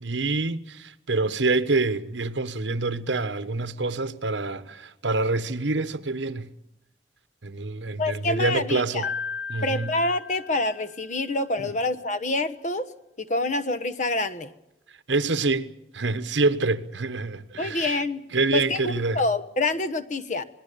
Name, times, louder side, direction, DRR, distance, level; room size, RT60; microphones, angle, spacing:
voice 1, 0.0-6.5 7.4-9.1 9.5-9.9 11.6-11.7 15.1-18.0 18.3-19.2, right 3 dB, 85° right, 1.2 m, -26 dB
voice 2, 8.0-9.1 9.6-12.9 13.2-14.5 17.6-18.2 18.5-20.4, left 2 dB, 40° left, 1.2 m, -27 dB
Piano, 9.0-11.1, left 5 dB, 70° left, 0.7 m, -35 dB
26.0 x 20.0 x 6.9 m
head